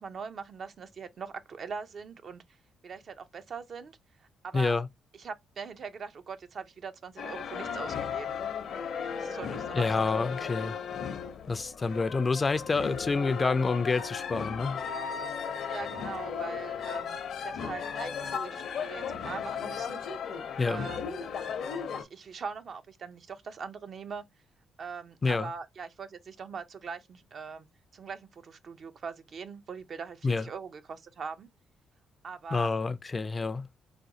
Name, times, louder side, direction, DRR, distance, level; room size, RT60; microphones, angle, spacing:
voice 1, 0.0-2.4 2.8-4.8 5.1-8.4 9.0-10.2 15.6-20.1 20.7-21.1 21.9-24.2 24.8-27.7 27.9-31.5 32.2-32.7, right 5 dB, 50° right, 0.5 m, -42 dB
voice 2, 4.5-4.9 9.8-10.8 11.5-14.8 20.6-20.9 25.2-25.5 30.2-30.4 32.5-33.7, left 4 dB, 30° left, 0.4 m, -28 dB
sound 1, 7.2-22.0, left 7 dB, 65° left, 0.7 m, -36 dB
4.2 x 2.2 x 2.7 m
cardioid pair, 90°, 0 cm